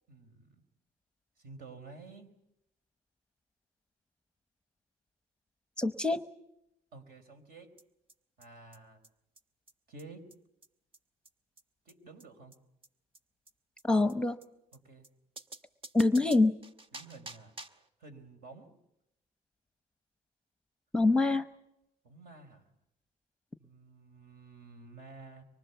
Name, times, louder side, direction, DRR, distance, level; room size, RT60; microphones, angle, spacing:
voice 1, 0.1-0.6 1.4-2.3 6.9-7.7 8.4-9.0 9.9-10.3 11.8-12.5 14.7-15.1 16.1-16.3 16.9-17.5 18.0-18.7 22.0-22.7 23.6-25.4, right 3 dB, 65° right, 8 dB, 4.7 m, -51 dB
voice 2, 5.8-6.2 13.8-14.4 15.9-16.5 20.9-21.5, left 2 dB, 5° left, 11 dB, 0.9 m, -25 dB
sound 1, 7.8-7.9 8.1-8.2 8.4-8.5 8.7-8.8 9.0-9.1 9.3-9.4 9.7-9.8 10.0-10.1 10.3-10.4 10.6-10.7 10.9-11.0 11.2-11.3 11.6-11.7 11.9-12.0 12.2-12.3 12.5-12.6 12.8-12.9 13.1-13.2 13.5-13.6 13.8-13.9 14.1-14.2 14.4-14.5 14.7-14.8 15.0-15.1 15.4-17.9, right 2 dB, 30° right, 1.3 m, -49 dB
24.5 x 24.0 x 7.1 m, 0.83 s
cardioid pair, 110°, 17 cm